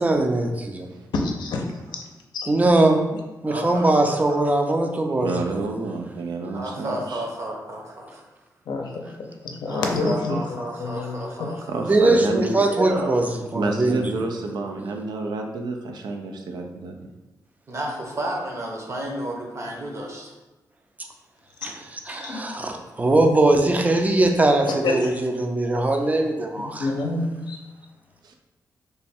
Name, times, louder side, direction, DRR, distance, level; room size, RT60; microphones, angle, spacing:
voice 1, 0.0-0.9 2.5-3.0 3.4-5.7 11.8-13.3 13.5-14.0 21.6-26.9, right 2 dB, 20° right, 4 dB, 0.5 m, -21 dB
voice 2, 1.1-1.6 1.9-2.0 2.3-2.5 8.7-9.1 9.4-10.4 10.8-11.2 22.1-22.4 24.7-25.1 26.6-27.6, left 3 dB, 85° left, 2 dB, 0.5 m, -27 dB
voice 3, 3.4-4.4 6.5-8.2 9.7-11.8 12.5-13.1 17.7-20.3, right 1 dB, 45° right, 0 dB, 0.8 m, -32 dB
voice 4, 5.2-7.3 11.7-12.5 13.5-17.1 28.2-28.3, right 3 dB, 85° right, 3 dB, 0.4 m, -29 dB
3.3 x 2.2 x 4.2 m, 1.1 s
cardioid pair, 85°, 7 cm